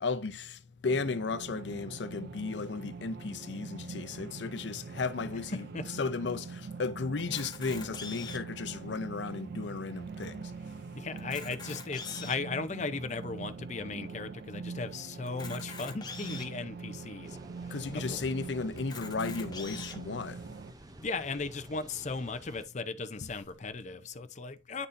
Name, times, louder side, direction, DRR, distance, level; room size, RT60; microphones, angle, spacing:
voice 1, 0.0-0.6 0.8-10.4 17.7-20.4, left 4 dB, 90° left, 0.6 m, -34 dB
sound 1, 0.8-20.7, right 4 dB, 60° right, 0.4 m, -43 dB
Camera, 7.2-8.6 9.2-9.3 9.5-9.7 10.2-10.3 11.1-12.5 13.1-13.2 15.3-16.5 17.2-17.3 17.6-17.7 18.8-20.0, left 5 dB, 25° left, 1.1 m, -44 dB
voice 2, 10.9-17.4 17.6-18.2 21.0-24.9, left 4 dB, 45° left, 0.6 m, -37 dB
sound 2, 17.2-22.7, right 1 dB, 20° right, 0.6 m, -51 dB
9.8 x 4.1 x 2.6 m
head